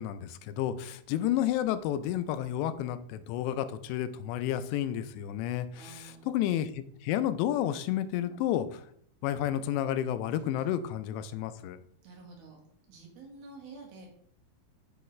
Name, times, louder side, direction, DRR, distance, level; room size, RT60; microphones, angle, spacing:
voice 1, 0.0-8.8 9.2-11.8, left 11 dB, 90° left, 12 dB, 2.8 m, -31 dB
voice 2, 5.8-6.4 12.0-12.6 12.9-14.1, right 3 dB, 65° right, -1 dB, 3.3 m, -49 dB
7.9 x 6.8 x 3.1 m, 0.67 s
omnidirectional pair, 5.0 m